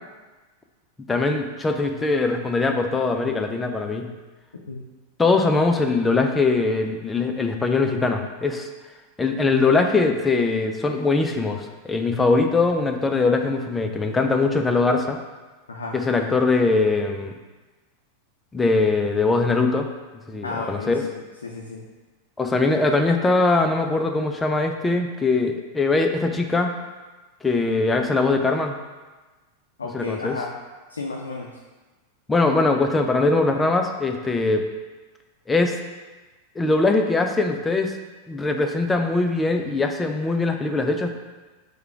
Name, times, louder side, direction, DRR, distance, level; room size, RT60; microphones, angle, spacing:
voice 1, 1.1-4.1 5.2-8.7 9.2-15.2 15.9-17.3 18.5-19.9 20.3-21.1 22.4-26.7 27.4-28.7 29.9-30.4 32.3-34.6 35.5-35.7 36.6-37.9 38.3-41.1, left 3 dB, 10° left, 5 dB, 0.4 m, -21 dB
voice 2, 20.4-21.8 29.8-30.5 30.9-31.5, left 3 dB, 70° left, -1 dB, 0.4 m, -33 dB
4.8 x 2.2 x 4.6 m, 1.2 s
figure-of-eight pair, 90°, 0 cm